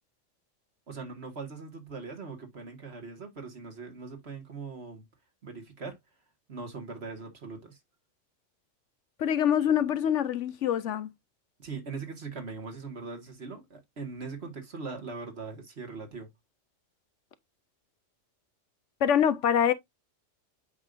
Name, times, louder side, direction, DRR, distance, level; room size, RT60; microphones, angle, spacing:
voice 1, 0.9-5.1 5.4-6.0 6.5-7.8 11.6-16.3, right 4 dB, 55° right, 2.1 m, -40 dB
voice 2, 9.2-11.1 19.0-19.7, left 9 dB, 70° left, 1.0 m, -25 dB
8.1 x 5.2 x 2.6 m
omnidirectional pair, 1.3 m